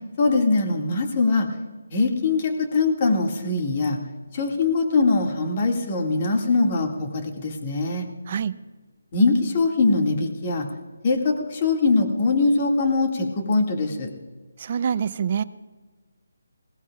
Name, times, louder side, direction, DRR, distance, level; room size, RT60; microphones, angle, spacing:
voice 1, 0.2-1.5 1.9-4.0 4.3-8.0 9.1-10.7 11.0-14.1, left 3 dB, 30° left, 1 dB, 2.2 m, -22 dB
voice 2, 14.6-15.4, right 7 dB, 40° right, 15 dB, 0.5 m, -25 dB
21.5 x 17.0 x 2.5 m, 1.4 s
figure-of-eight pair, 165°, 0 cm